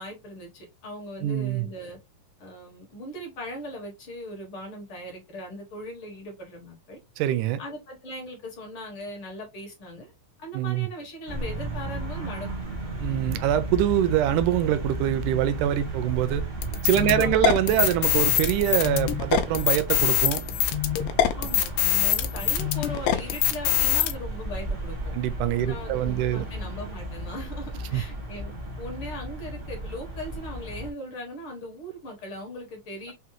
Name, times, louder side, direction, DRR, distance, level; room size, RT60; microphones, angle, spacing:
voice 1, 0.0-2.0 2.4-7.0 7.6-10.1 10.4-12.5 16.9-17.6 21.4-25.2 25.4-33.1, equal, 55° left, 1.7 m, -39 dB
voice 2, 1.2-1.7 7.2-7.6 10.5-10.9 13.0-16.4 16.8-20.4 25.1-26.5 27.9-28.0, right 12 dB, 80° right, 2.0 m, -24 dB
sound 1, 11.3-30.9, right 1 dB, 55° right, 0.8 m, -34 dB
sound 2, 16.6-24.1, left 11 dB, 85° left, 2.1 m, -24 dB
5.6 x 2.2 x 3.0 m
omnidirectional pair, 3.7 m